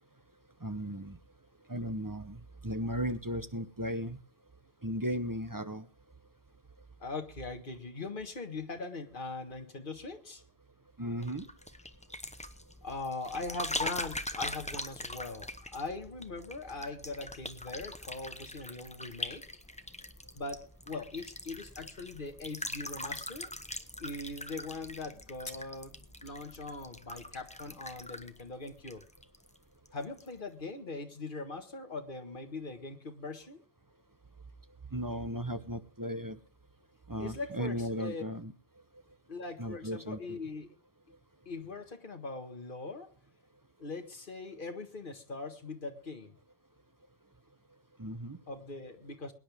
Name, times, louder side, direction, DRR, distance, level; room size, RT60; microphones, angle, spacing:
voice 1, 0.6-1.2 1.7-4.2 4.8-5.9 11.0-11.5 34.9-36.4 37.1-38.5 39.6-40.4 48.0-48.4, equal, 20° right, 10 dB, 0.8 m, -36 dB
voice 2, 7.0-10.4 12.8-19.5 20.3-23.5 24.0-26.0 26.2-29.0 29.9-33.6 37.2-38.2 39.3-40.7 41.5-43.1 43.8-46.4 48.5-49.3, left 3 dB, 55° left, 6 dB, 1.8 m, -41 dB
sound 1, 11.2-29.6 29.9-30.3, left 1 dB, 5° left, 0.8 m, -42 dB
23.0 x 10.0 x 3.5 m, 0.32 s
omnidirectional pair, 1.1 m